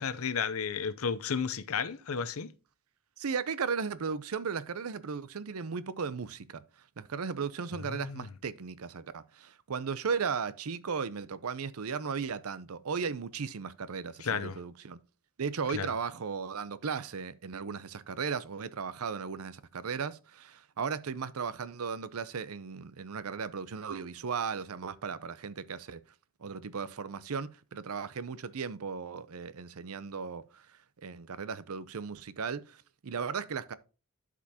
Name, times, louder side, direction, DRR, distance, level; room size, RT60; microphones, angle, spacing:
voice 1, 0.0-2.5 7.9-8.3 14.2-14.6 15.7-15.9, left 6 dB, 80° left, 0.7 m, -33 dB
voice 2, 3.2-6.6 7.0-15.0 15.4-26.0 26.4-30.6 31.0-33.7, right 5 dB, 90° right, 0.6 m, -36 dB
12.0 x 5.0 x 2.8 m
head